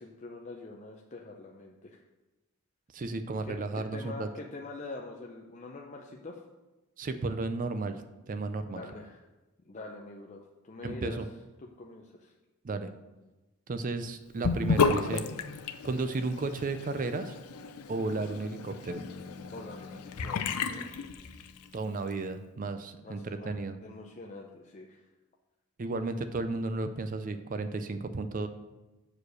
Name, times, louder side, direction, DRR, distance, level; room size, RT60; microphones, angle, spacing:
voice 1, 0.0-2.0 3.4-6.4 8.7-9.2 9.7-11.2 11.6-12.3 19.4-21.1 23.0-23.5 23.8-25.0, left 2 dB, 30° left, 0 dB, 0.5 m, -45 dB
voice 2, 2.9-4.3 7.0-8.8 10.8-11.3 12.6-12.9 13.7-15.2 15.8-17.3 17.9-19.1 21.7-23.8 25.8-28.5, right 3 dB, 35° right, 9 dB, 0.4 m, -33 dB
Sink (filling or washing) / Bathtub (filling or washing), 14.4-21.7, left 5 dB, 90° left, 0.5 m, -33 dB
Bass guitar, 18.9-22.9, left 3 dB, 20° right, 0.8 m, -50 dB
6.6 x 4.9 x 6.2 m, 1.1 s
head